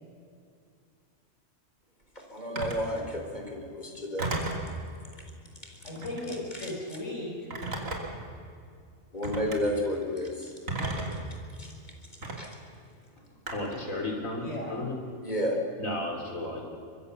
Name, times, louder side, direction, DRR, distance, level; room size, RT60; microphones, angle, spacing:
voice 1, 2.2-4.4 5.6-5.7 9.1-10.5 11.1-11.2 11.6-11.7 12.4-12.5 15.2-15.6, equal, 35° left, 2 dB, 3.8 m, -32 dB
Telephone, 2.6-2.9 4.2-4.7 5.9-6.3 7.5-8.2 9.2-9.6 10.7-11.2 12.2-12.4 13.5-13.9, right 2 dB, 85° right, 3.3 m, -33 dB
voice 2, 5.8-7.5 14.4-14.7, left 1 dB, 65° left, -2 dB, 5.1 m, -36 dB
voice 3, 13.5-15.0 15.8-16.6, left 2 dB, 85° left, 2 dB, 3.9 m, -33 dB
23.5 x 22.5 x 6.9 m, 2.3 s
omnidirectional pair, 1.4 m